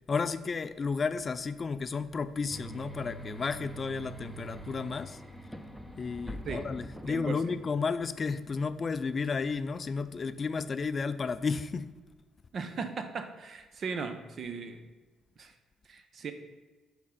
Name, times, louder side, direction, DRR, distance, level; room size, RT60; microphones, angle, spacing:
voice 1, 0.1-5.2 6.0-11.9, left 5 dB, 40° left, 13 dB, 0.3 m, -32 dB
sound 1, 2.5-7.9, right 2 dB, ahead, 0.7 m, -44 dB
voice 2, 7.1-7.5 12.5-14.8 15.4-15.5 15.9-16.3, right 5 dB, 50° right, 8 dB, 0.7 m, -37 dB
6.4 x 3.6 x 5.8 m, 1.3 s
supercardioid pair, 65°, 0 cm